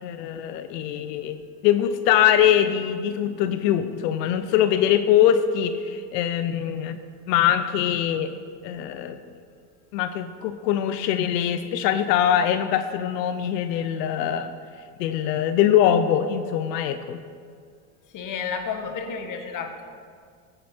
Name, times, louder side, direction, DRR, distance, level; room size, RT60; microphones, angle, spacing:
voice 1, 0.0-7.0 7.3-8.3 8.6-9.2 9.9-14.5 15.0-17.2, left 10 dB, 85° left, 10 dB, 0.8 m, -22 dB
voice 2, 18.1-19.8, left 6 dB, 40° left, 6 dB, 1.4 m, -31 dB
15.5 x 9.1 x 4.5 m, 2.2 s
supercardioid pair, 120°, 48 cm